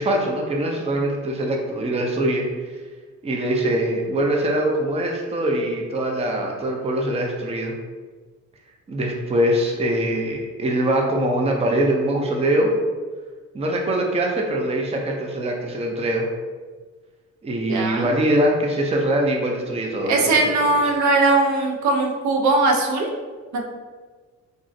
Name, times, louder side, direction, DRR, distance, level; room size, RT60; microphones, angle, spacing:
voice 1, 0.0-2.5 3.2-7.7 8.9-12.7 13.5-16.3 17.4-20.2 20.6-20.7, right 1 dB, 20° right, 0 dB, 0.5 m, -23 dB
voice 2, 17.7-18.1 20.1-23.1 23.5-23.6, right 3 dB, 65° right, 2 dB, 0.6 m, -20 dB
3.6 x 2.1 x 2.6 m, 1.4 s
cardioid pair, 90°, 30 cm